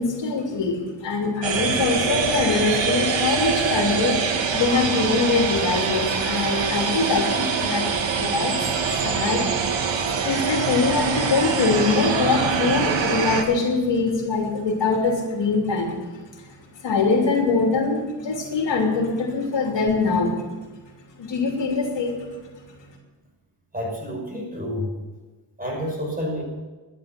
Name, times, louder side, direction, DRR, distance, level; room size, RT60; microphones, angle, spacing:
voice 1, 0.0-4.2 4.5-9.9 10.2-16.0 16.3-16.6 16.8-20.3 21.2-22.3, left 4 dB, 75° left, 1 dB, 3.1 m, -23 dB
sound 1, 1.4-13.4, right 5 dB, 85° right, 1.8 m, -24 dB
voice 2, 23.7-24.9 25.6-26.4, equal, 20° right, -1 dB, 5.8 m, -29 dB
12.0 x 10.5 x 7.7 m, 1.3 s
cardioid pair, 110°, 44 cm